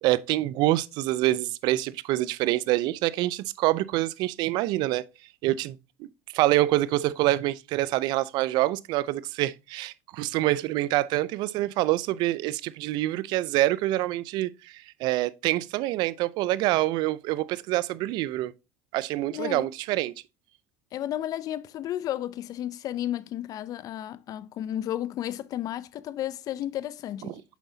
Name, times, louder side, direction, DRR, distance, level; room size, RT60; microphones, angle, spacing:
voice 1, 0.0-5.1 5.4-5.8 6.3-18.5 18.9-20.1 27.3-27.4, right 16 dB, 60° right, 0.5 m, -26 dB
voice 2, 19.3-19.7 20.9-27.4, left 12 dB, 50° left, 0.5 m, -33 dB
7.2 x 5.4 x 2.7 m
supercardioid pair, 105°, 8 cm